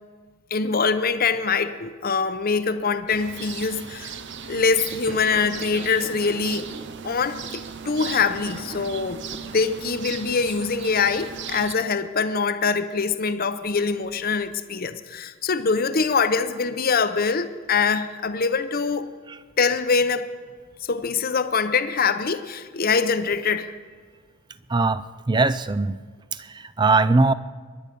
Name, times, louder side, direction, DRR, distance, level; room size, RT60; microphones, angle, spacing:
voice 1, 0.5-4.2 4.5-6.7 7.0-19.1 19.6-20.3 20.9-23.7, left 5 dB, 40° left, 11 dB, 0.7 m, -24 dB
sound 1, 3.1-11.8, right 7 dB, 55° right, 0.7 m, -38 dB
sound 2, 4.9-7.1 7.4-9.7, right 2 dB, 35° right, 1.2 m, -41 dB
voice 2, 24.7-26.0 26.3-27.3, right 3 dB, 20° right, 16 dB, 0.4 m, -21 dB
24.0 x 11.0 x 5.3 m, 1.5 s
head